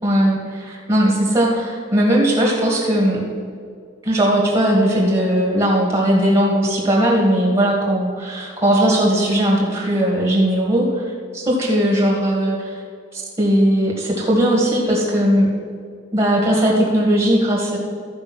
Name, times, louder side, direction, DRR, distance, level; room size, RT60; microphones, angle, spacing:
voice 1, 0.0-3.2 4.0-11.0 11.3-12.7 13.1-15.5 16.1-17.8, right 1 dB, 30° right, -3 dB, 1.8 m, -18 dB
13.5 x 5.1 x 6.2 m, 2.2 s
head